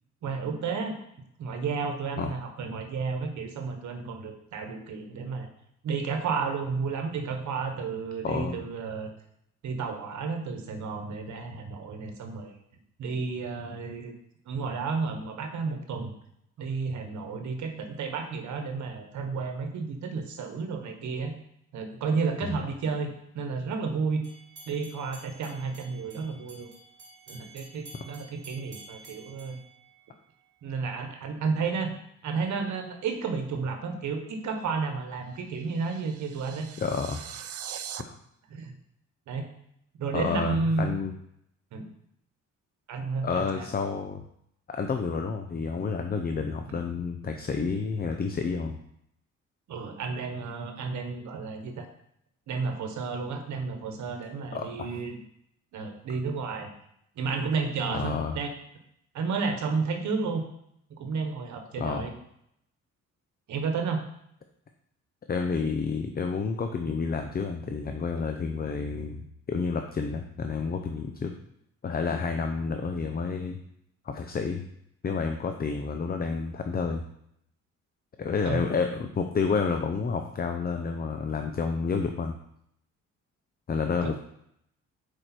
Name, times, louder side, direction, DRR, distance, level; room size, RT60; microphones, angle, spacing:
voice 1, 0.2-1.0 1.4-5.5 5.8-9.1 9.6-12.5 13.0-14.1 14.5-16.1 16.6-21.4 21.7-24.2 24.7-26.7 27.3-29.6 30.6-32.0 32.2-36.7 38.5-38.7 39.3-39.5 40.0-40.9 41.7-41.9 42.9-43.7 46.7-46.8 49.7-51.9 52.5-55.2 55.7-56.7 57.1-58.5 59.1-60.4 61.0-62.1 63.5-64.1 78.4-78.6 84.0-84.1, right 4 dB, 70° right, 5 dB, 1.3 m, -32 dB
voice 2, 8.2-8.6 22.4-22.6 28.1-28.2 36.8-37.4 38.0-38.2 40.1-41.1 43.2-44.2 44.7-48.8 54.5-55.0 57.9-58.4 61.8-62.1 65.3-71.3 71.8-73.6 74.0-74.7 75.0-77.0 78.2-82.3 83.7-84.2, left 5 dB, 30° left, 5 dB, 0.7 m, -30 dB
sound 1, 24.2-30.5, right 2 dB, 35° right, 2.0 m, -51 dB
sound 2, 35.3-38.0, right 9 dB, 50° right, 0.5 m, -41 dB
6.5 x 4.9 x 4.4 m, 0.74 s
cardioid pair, 90°, 30 cm